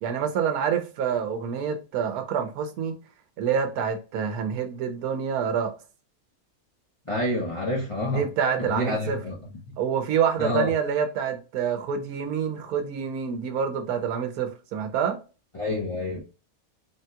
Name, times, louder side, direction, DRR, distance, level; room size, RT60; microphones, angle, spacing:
voice 1, 0.0-2.9 3.4-5.7 8.0-9.2 9.8-15.2, right 7 dB, 90° right, 1.1 m, -27 dB
voice 2, 7.1-8.3 8.6-9.3 10.4-10.7 15.5-16.2, left 2 dB, 30° left, 0.6 m, -28 dB
3.5 x 2.8 x 2.2 m
omnidirectional pair, 1.5 m